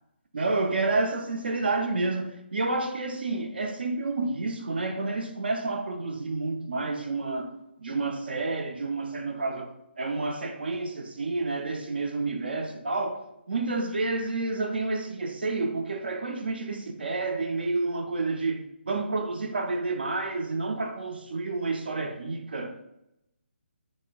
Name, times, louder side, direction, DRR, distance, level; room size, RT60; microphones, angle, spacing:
voice 1, 0.3-7.5 7.8-22.9, right 3 dB, 55° right, 0.4 m, -30 dB
3.7 x 2.9 x 2.2 m
figure-of-eight pair, 145°, 6 cm